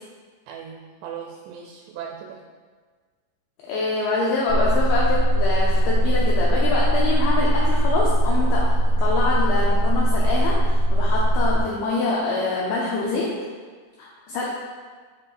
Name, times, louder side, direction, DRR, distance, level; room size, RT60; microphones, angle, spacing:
voice 1, 0.5-2.4, right 8 dB, 85° right, 1 dB, 2.6 m, -38 dB
voice 2, 3.6-8.7 9.0-13.4 14.0-14.5, left 3 dB, 85° left, -5 dB, 2.1 m, -25 dB
sound 1, 4.5-11.6, equal, 70° left, 3.1 m, -20 dB
8.6 x 4.8 x 2.5 m, 1.5 s
omnidirectional pair, 5.1 m